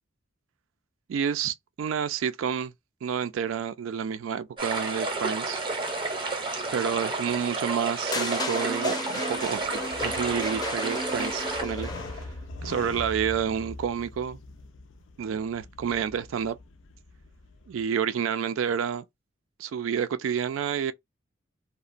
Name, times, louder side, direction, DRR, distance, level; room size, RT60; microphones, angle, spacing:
voice 1, 1.1-2.7 3.0-5.6 6.7-12.2 12.6-14.4 15.2-16.6 17.7-19.0 19.6-20.9, right 7 dB, 80° right, 0.3 m, -29 dB
sound 1, 4.6-11.6, right 3 dB, 25° right, 0.6 m, -31 dB
sound 2, 8.1-12.4, left 1 dB, 20° left, 0.5 m, -34 dB
sound 3, 9.3-17.8, left 2 dB, 70° left, 0.5 m, -43 dB
2.8 x 2.1 x 2.4 m
head